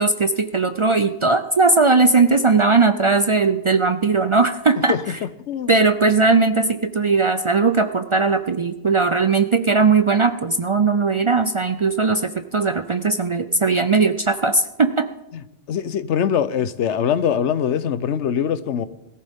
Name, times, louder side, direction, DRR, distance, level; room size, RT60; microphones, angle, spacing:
voice 1, 0.0-5.0 5.7-15.1, right 4 dB, 45° right, 9 dB, 0.4 m, -18 dB
voice 2, 4.9-5.7 15.7-18.9, left 8 dB, 85° left, 14 dB, 1.0 m, -23 dB
21.0 x 14.0 x 3.6 m, 0.95 s
omnidirectional pair, 1.2 m